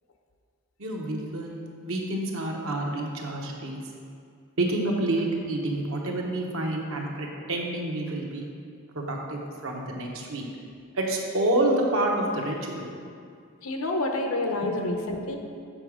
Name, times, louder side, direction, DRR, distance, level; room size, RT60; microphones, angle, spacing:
voice 1, 0.8-3.8 4.6-8.5 8.9-10.4 10.9-12.9 14.6-14.7, right 1 dB, 65° right, 0 dB, 1.0 m, -28 dB
voice 2, 13.6-15.4, left 2 dB, 70° left, 3 dB, 0.8 m, -28 dB
7.6 x 4.8 x 4.9 m, 2.3 s
head